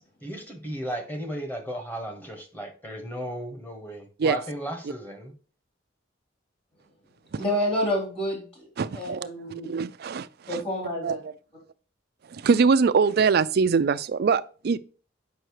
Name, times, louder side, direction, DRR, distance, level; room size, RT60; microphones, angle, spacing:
voice 1, 0.2-5.3, equal, 10° left, 1.4 m, -35 dB
voice 2, 7.4-8.7 8.9-9.7 10.5-11.2, equal, 30° left, 3.3 m, -28 dB
voice 3, 8.8-10.6 11.0-11.3 12.3-14.8, right 5 dB, 55° right, 0.4 m, -23 dB
7.7 x 5.5 x 3.1 m
head